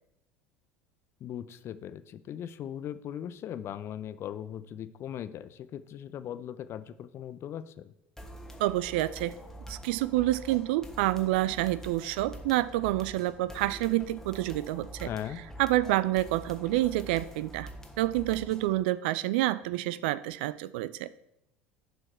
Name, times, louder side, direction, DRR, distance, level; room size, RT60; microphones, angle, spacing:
voice 1, 1.2-7.9 15.0-15.4, left 10 dB, 45° left, 14 dB, 0.5 m, -39 dB
sound 1, 8.2-18.8, right 1 dB, 5° left, 1.3 m, -46 dB
voice 2, 8.6-9.3 9.7-15.1 15.6-17.7 18.0-21.1, right 16 dB, 65° right, 18 dB, 0.3 m, -28 dB
11.0 x 4.8 x 4.4 m, 0.80 s
figure-of-eight pair, 70°, 6 cm